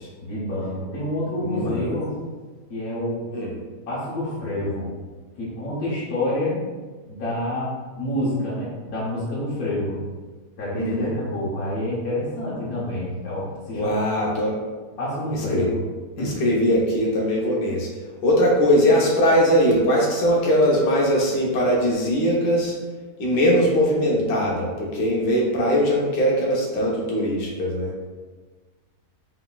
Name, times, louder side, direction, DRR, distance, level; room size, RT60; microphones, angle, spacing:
voice 1, 0.2-2.1 2.7-3.2 3.9-4.9 5.4-6.6 7.0-9.9 10.6-14.2 15.0-15.7 16.2-16.3, left 1 dB, 60° left, -8 dB, 1.6 m, -28 dB
voice 2, 1.4-1.7 3.3-3.5 10.7-11.1 13.7-14.5 15.3-15.7 16.2-17.9 18.2-22.7 23.2-27.9, equal, 90° left, -3 dB, 1.6 m, -21 dB
4.4 x 4.1 x 2.4 m, 1.3 s
omnidirectional pair, 1.8 m